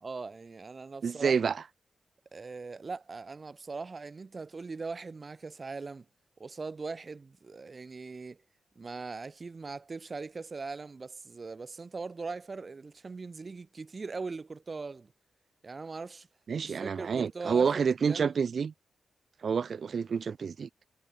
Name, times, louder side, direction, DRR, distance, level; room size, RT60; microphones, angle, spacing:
voice 1, 0.0-1.4 2.3-6.1 6.4-8.4 8.8-15.1 15.6-16.3 16.6-18.4, right 4 dB, 30° right, 0.9 m, -40 dB
voice 2, 1.0-1.6 16.5-18.7 19.4-20.7, right 6 dB, 50° right, 0.3 m, -28 dB
wide cardioid pair, 160°, 0 cm